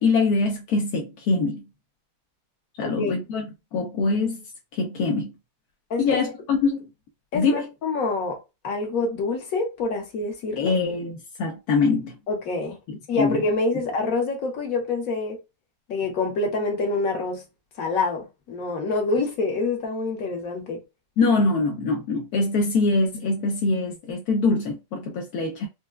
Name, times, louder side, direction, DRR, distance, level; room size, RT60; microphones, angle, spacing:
voice 1, 0.0-1.6 2.8-4.4 4.7-5.3 6.0-6.9 7.3-7.7 10.6-12.2 12.9-13.4 21.2-25.7, left 3 dB, 70° left, 0.9 m, -24 dB
voice 2, 2.8-3.1 5.9-6.3 7.3-8.4 8.6-10.7 12.3-12.8 13.1-15.4 15.9-17.4 17.8-20.8, left 3 dB, 50° left, 1.2 m, -26 dB
4.5 x 2.2 x 2.3 m
omnidirectional pair, 2.4 m